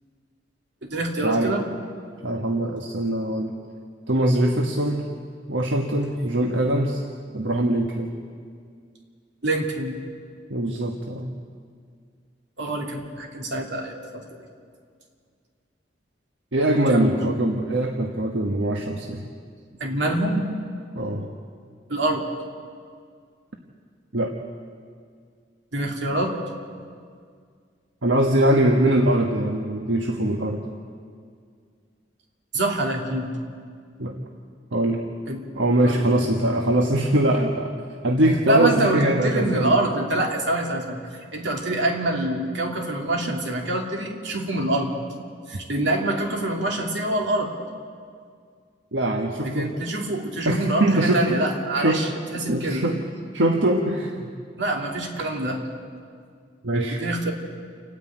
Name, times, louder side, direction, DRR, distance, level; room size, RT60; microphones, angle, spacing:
voice 1, 0.9-1.6 9.4-9.9 12.6-14.4 16.9-17.2 19.8-20.5 21.9-22.2 25.7-26.4 32.5-33.3 35.3-35.4 35.8-36.1 38.5-41.0 41.3-44.9 45.5-47.5 49.4-52.8 54.6-55.6 57.0-57.3, right 1 dB, 70° right, 1 dB, 2.8 m, -25 dB
voice 2, 2.2-3.5 4.1-5.0 5.5-7.0 7.3-8.1 10.5-11.3 16.5-19.2 20.9-21.3 24.1-24.3 28.0-30.6 34.0-34.2 34.7-35.0 35.6-37.7 38.0-39.8 48.9-49.7 50.4-51.4 51.8-52.0 52.5-53.0 53.3-54.3 56.6-57.0, right 1 dB, 85° right, 2 dB, 1.3 m, -22 dB
29.0 x 9.9 x 9.0 m, 2.1 s
head